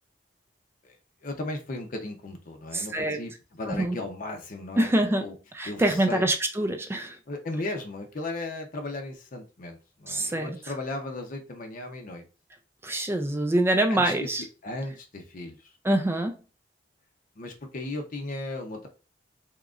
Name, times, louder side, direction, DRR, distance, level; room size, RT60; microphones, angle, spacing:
voice 1, 1.2-3.3 3.6-4.9 5.2-5.3 5.7-6.2 7.3-12.2 13.9-14.1 14.6-15.6 17.4-18.9, left 2 dB, 50° left, 0.7 m, -36 dB
voice 2, 2.7-3.2 3.6-4.0 4.8-7.2 10.1-10.7 12.8-14.5 15.8-16.4, right 1 dB, 15° right, 0.4 m, -25 dB
3.6 x 3.0 x 2.4 m
head